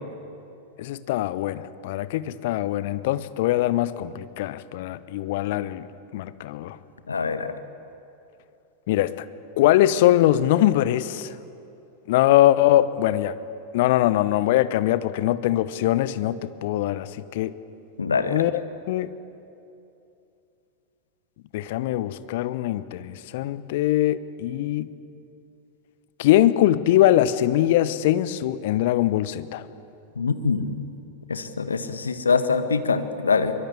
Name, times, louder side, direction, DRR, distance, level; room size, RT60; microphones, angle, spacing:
voice 1, 0.8-5.9 6.1-6.8 8.9-9.1 9.6-11.3 12.1-13.4 13.7-17.5 18.3-18.6 18.9-19.1 21.5-24.9 26.2-29.6, left 13 dB, 50° left, 15 dB, 0.9 m, -22 dB
voice 2, 7.1-7.5 18.0-18.5 30.2-30.8 31.3-33.5, left 5 dB, 75° left, 10 dB, 1.4 m, -24 dB
24.0 x 22.5 x 8.2 m, 2.8 s
figure-of-eight pair, 90°, 0 cm